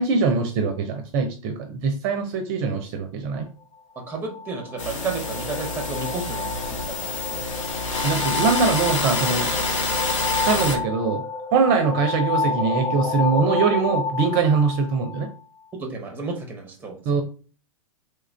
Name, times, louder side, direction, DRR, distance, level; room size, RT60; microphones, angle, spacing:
voice 1, 0.0-3.5 8.0-9.5 10.4-11.2 11.5-15.3 17.1-17.2, right 5 dB, 45° right, 5 dB, 0.6 m, -22 dB
sound 1, 4.0-15.6, left 4 dB, 30° left, 0.7 m, -30 dB
voice 2, 4.0-7.5 8.1-8.4 15.7-17.2, right 3 dB, 10° right, 3 dB, 0.9 m, -33 dB
sound 2, 4.8-10.8, left 2 dB, 60° left, 0.9 m, -27 dB
3.2 x 2.4 x 3.3 m, 0.38 s
hypercardioid pair, 110°, 18 cm